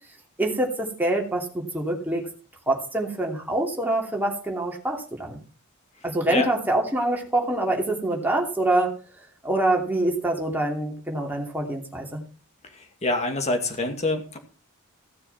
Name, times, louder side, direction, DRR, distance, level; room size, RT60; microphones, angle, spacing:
voice 1, 0.4-2.2 2.7-5.4 6.0-8.9 9.4-12.2, right 1 dB, 10° right, 0 dB, 2.8 m, -25 dB
voice 2, 12.6-14.4, left 2 dB, 30° left, 4 dB, 2.4 m, -26 dB
16.0 x 7.0 x 5.9 m, 0.39 s
head